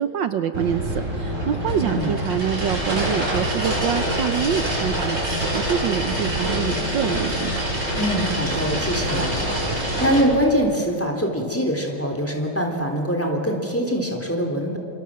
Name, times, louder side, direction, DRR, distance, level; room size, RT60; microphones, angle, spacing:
voice 1, 0.0-7.6, right 9 dB, 70° right, 9 dB, 1.6 m, -26 dB
sound 1, 0.5-10.2, right 1 dB, 35° right, 6.3 m, -25 dB
voice 2, 1.7-2.2 8.0-9.5 9.8-14.8, equal, 5° left, 2 dB, 3.6 m, -23 dB
28.0 x 27.0 x 7.7 m, 2.7 s
omnidirectional pair, 2.2 m